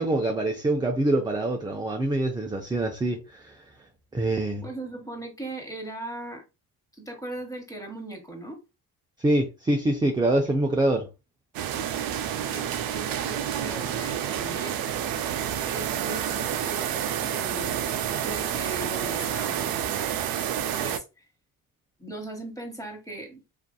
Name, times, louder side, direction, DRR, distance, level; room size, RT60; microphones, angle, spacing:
voice 1, 0.0-3.6 4.1-4.6 9.2-11.1, right 1 dB, 10° right, 0.4 m, -25 dB
voice 2, 4.6-6.4 6.9-8.6 12.5-15.1 15.7-20.1 20.8-21.3 22.0-23.4, right 1 dB, 10° left, 1.0 m, -39 dB
sound 1, 11.5-21.0, right 10 dB, 60° right, 0.5 m, -29 dB
2.6 x 2.5 x 2.3 m
supercardioid pair, 75°, 39 cm